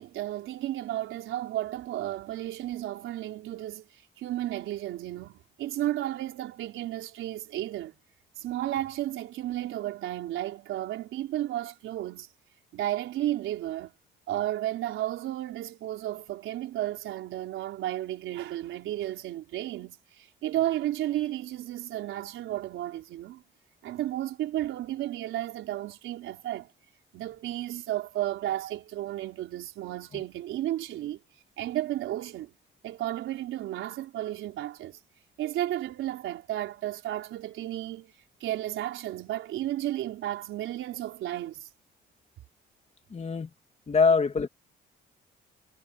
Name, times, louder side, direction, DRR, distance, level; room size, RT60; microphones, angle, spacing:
voice 1, 0.0-8.0 8.4-12.3 12.7-13.9 14.3-23.4 23.8-26.7 27.1-31.2 31.6-32.5 32.8-35.0 35.4-38.1 38.4-41.7, right 13 dB, 85° right, 4.4 m, -33 dB
voice 2, 43.1-43.5 43.9-44.5, left 4 dB, 35° left, 2.4 m, -23 dB
cardioid pair, 90°, 20 cm